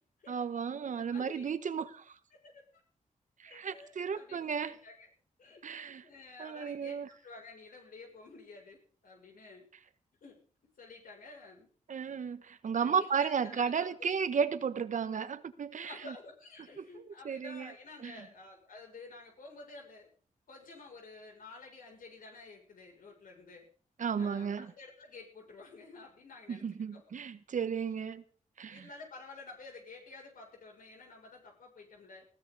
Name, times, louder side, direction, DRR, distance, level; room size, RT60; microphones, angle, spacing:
voice 1, 0.3-2.1 3.4-4.8 5.6-6.0 6.4-7.1 11.9-16.1 16.8-16.9 17.2-17.7 18.0-18.2 24.0-24.7 26.5-28.2 28.6-28.9, right 6 dB, 65° right, 1.4 m, -34 dB
voice 2, 0.8-1.5 2.3-2.6 3.4-5.1 5.4-5.6 6.0-9.7 10.2-10.4 10.8-11.7 12.8-14.2 15.8-20.1 20.5-23.7 24.2-27.0 28.7-32.3, left 3 dB, 80° left, 7.1 m, -51 dB
20.5 x 15.5 x 4.2 m
wide cardioid pair, 130°, 14 cm